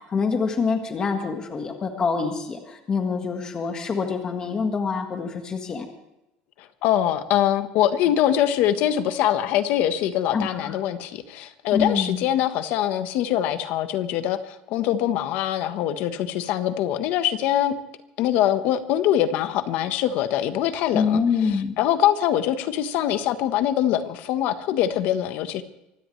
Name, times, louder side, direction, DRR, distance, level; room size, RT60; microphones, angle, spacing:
voice 1, 0.1-5.8 10.3-10.8 11.7-12.2 20.9-21.7, left 5 dB, 20° left, 4 dB, 1.7 m, -25 dB
voice 2, 6.6-17.7 18.2-21.2 21.8-25.6, left 11 dB, 55° left, 10 dB, 1.2 m, -23 dB
24.5 x 16.5 x 3.3 m, 0.90 s
cardioid pair, 170°, 3 cm